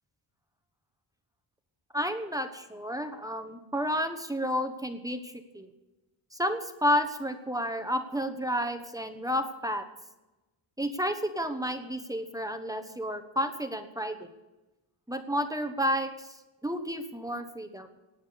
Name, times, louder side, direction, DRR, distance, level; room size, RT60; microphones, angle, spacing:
voice 1, 1.9-5.7 6.3-9.8 10.8-14.3 15.1-17.9, equal, 5° right, 7 dB, 1.1 m, -31 dB
17.5 x 9.4 x 6.9 m, 1.1 s
wide cardioid pair, 120°, 47 cm